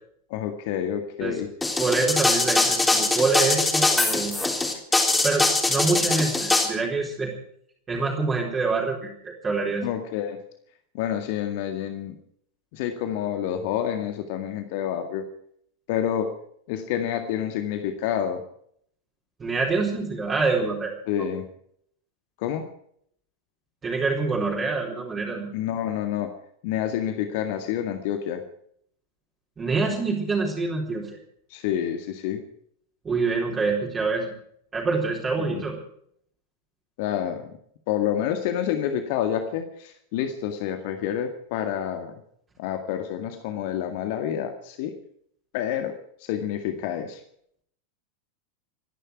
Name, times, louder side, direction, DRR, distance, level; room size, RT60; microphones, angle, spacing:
voice 1, 0.3-1.5 9.8-10.4 10.9-12.1 12.7-15.3 15.9-16.3 16.7-18.4 21.1-21.5 22.4-22.6 25.5-26.3 26.6-28.4 31.5-32.4 35.4-35.6 37.0-37.5 37.9-42.1 42.6-44.9 45.5-45.9 46.3-47.2, left 10 dB, 50° left, 6 dB, 2.0 m, -28 dB
sound 1, 1.6-6.7, left 2 dB, 10° left, 3.7 m, -22 dB
voice 2, 1.8-4.4 5.2-7.3 7.9-9.9 19.4-20.9 23.8-25.5 29.6-31.2 33.0-34.3 34.7-35.8, right 4 dB, 20° right, -2 dB, 4.2 m, -26 dB
27.0 x 11.0 x 4.8 m, 0.66 s
figure-of-eight pair, 90°, 0 cm